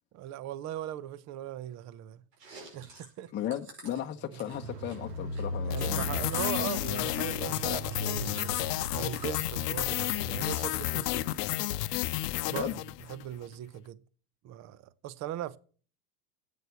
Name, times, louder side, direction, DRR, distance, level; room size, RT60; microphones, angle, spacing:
voice 1, 0.1-2.2 2.7-3.3 5.6-8.6 8.9-11.3 12.5-12.7 13.1-14.0 14.4-15.6, right 12 dB, 35° right, 0.7 m, -39 dB
Chewing mastication, 2.3-6.5 6.7-9.4 9.8-10.5 10.8-11.7, right 3 dB, 90° right, 5.4 m, -50 dB
voice 2, 3.3-6.3 12.5-12.7, left 11 dB, 25° left, 0.8 m, -36 dB
Car, 4.5-10.7 10.9-11.0, right 1 dB, 75° right, 2.5 m, -38 dB
sound 1, 5.7-13.3, left 16 dB, 85° left, 0.7 m, -32 dB
10.5 x 8.5 x 8.1 m
supercardioid pair, 120°, 47 cm